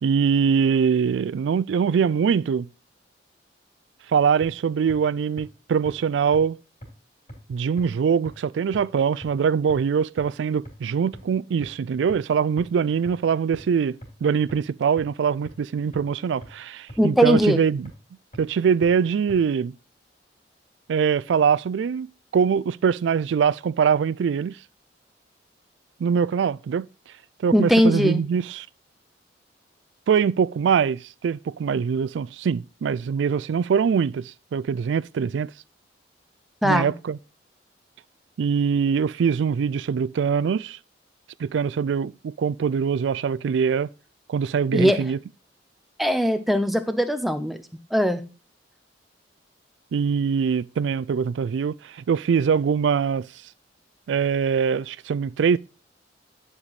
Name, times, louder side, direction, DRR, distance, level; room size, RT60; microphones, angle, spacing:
voice 1, 0.0-2.7 4.1-6.6 7.5-17.9 18.4-19.7 20.9-24.6 26.0-26.9 27.4-28.7 30.1-35.5 36.6-37.2 38.4-40.8 41.4-43.9 44.3-45.2 49.9-53.3 54.1-55.6, right 6 dB, 80° right, 0.3 m, -23 dB
sound 1, 4.4-4.5 4.9-5.0 5.4-5.5 5.9-6.0 6.3-6.4 6.8-6.9 7.3-7.4 7.8-7.9 8.3-8.4 8.7-8.8 9.2-9.3 9.7-9.8 10.2-10.3 10.7-10.8 11.1-11.2 11.6-11.7 12.1-12.2 12.6-12.7 13.1-13.2 13.5-13.6 14.0-14.1 14.5-14.6 15.0-15.1 15.5-15.6 15.9-16.0 16.4-16.5 16.9-17.0 17.4-17.5 17.9-18.0 18.3-18.4 18.8-18.9 19.3-19.4, equal, 35° left, 3.7 m, -39 dB
voice 2, 17.0-17.6 27.5-28.3 36.6-36.9 44.7-45.1 46.0-47.6 47.9-48.2, equal, ahead, 0.6 m, -20 dB
10.0 x 4.9 x 4.0 m
head